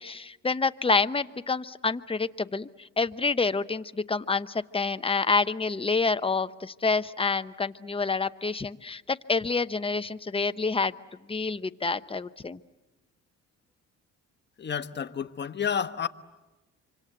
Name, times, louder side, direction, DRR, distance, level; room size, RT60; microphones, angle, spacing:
voice 1, 0.0-10.9 11.3-12.6, left 4 dB, 20° left, 0.8 m, -28 dB
voice 2, 14.6-16.1, left 7 dB, 35° left, 1.2 m, -30 dB
26.0 x 25.5 x 7.9 m
cardioid pair, 90°, 30 cm